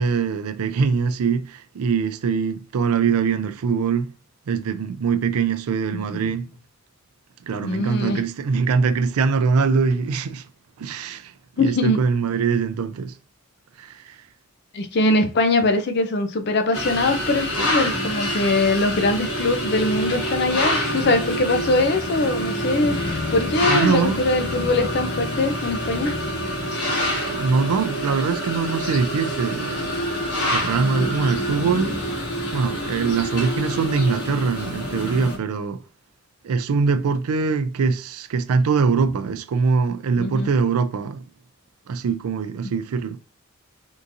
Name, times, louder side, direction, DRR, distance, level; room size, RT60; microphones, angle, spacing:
voice 1, 0.0-4.1 4.5-6.5 7.4-10.5 10.8-11.3 11.6-13.1 13.8-14.2 23.7-24.3 27.3-30.0 30.5-32.0 32.5-35.8 36.4-41.2 41.9-43.2, right 5 dB, 85° right, 0.4 m, -23 dB
voice 2, 5.9-6.3 7.6-8.2 11.6-12.0 14.7-23.0 23.3-26.1 40.2-40.5, left 2 dB, 50° left, 0.4 m, -22 dB
sound 1, 16.7-35.4, equal, 90° left, 1.3 m, -26 dB
3.7 x 2.6 x 2.6 m
head